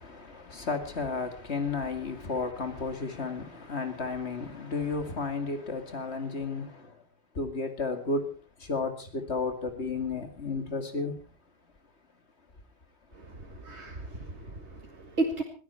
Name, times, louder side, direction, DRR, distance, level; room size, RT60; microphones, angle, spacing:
voice 1, 0.0-7.0 7.3-8.3 8.6-11.1, left 4 dB, 75° left, 2.6 m, -33 dB
voice 2, 13.1-15.4, right 2 dB, 90° right, 2.7 m, -34 dB
21.0 x 14.0 x 4.5 m
omnidirectional pair, 1.1 m